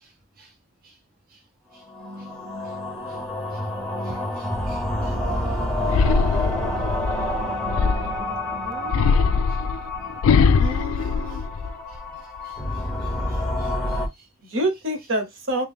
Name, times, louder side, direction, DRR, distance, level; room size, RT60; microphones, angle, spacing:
sound 1, 1.8-14.1, left 1 dB, 5° left, 0.7 m, -28 dB
voice 1, 4.0-5.6 12.4-14.3, right 2 dB, 45° right, 0.7 m, -53 dB
sound 2, 5.9-8.3 8.9-12.0 12.4-12.9, left 5 dB, 80° left, 0.3 m, -21 dB
voice 2, 8.6-9.0 10.6-11.4 14.4-15.7, right 1 dB, 65° right, 1.1 m, -28 dB
3.0 x 2.7 x 3.6 m
head